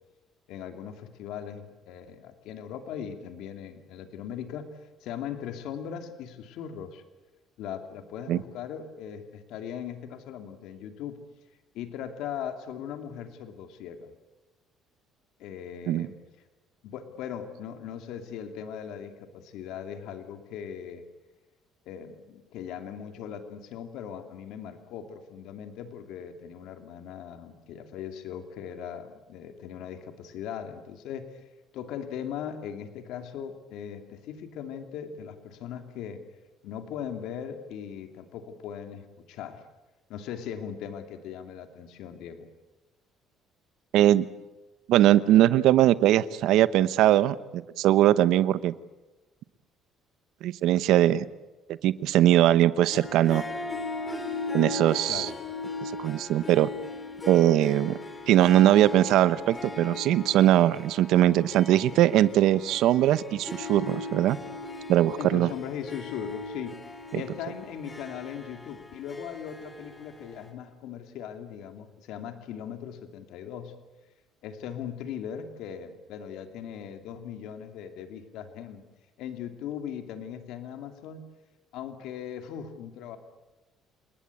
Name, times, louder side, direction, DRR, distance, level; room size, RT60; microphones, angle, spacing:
voice 1, 0.5-4.7 5.0-7.0 7.6-11.2 11.7-14.1 15.4-16.1 16.8-21.0 21.9-31.4 31.7-36.2 36.6-39.6 40.1-42.5 55.1-55.4 65.2-66.8 67.1-73.7 74.4-78.8 79.2-81.2 81.7-83.2, left 8 dB, 75° left, 7 dB, 2.8 m, -39 dB
voice 2, 43.9-44.2 44.9-48.7 50.4-51.2 51.8-53.4 54.5-55.3 55.8-56.7 57.3-58.0 58.3-64.4 64.9-65.5 67.1-67.2, right 13 dB, 70° right, 16 dB, 0.9 m, -21 dB
Harp, 52.9-70.5, left 3 dB, 15° left, 3.8 m, -38 dB
29.5 x 19.5 x 8.5 m, 1.1 s
cardioid pair, 145°, 0 cm